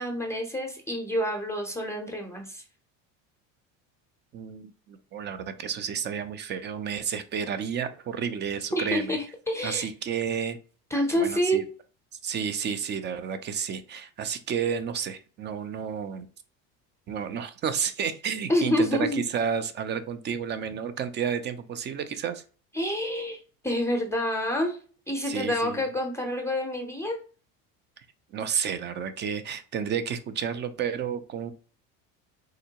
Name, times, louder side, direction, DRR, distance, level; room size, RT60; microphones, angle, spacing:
voice 1, 0.0-2.6 8.7-9.9 10.9-11.6 18.5-19.2 22.7-23.4 23.6-24.8 25.1-27.2, equal, 5° left, 2 dB, 0.6 m, -27 dB
voice 2, 4.3-9.2 9.6-10.6 11.2-11.6 12.2-16.3 17.1-22.4 25.3-25.8 28.3-31.5, right 7 dB, 30° right, 11 dB, 0.3 m, -31 dB
3.7 x 2.1 x 2.8 m, 0.37 s
supercardioid pair, 110°, 38 cm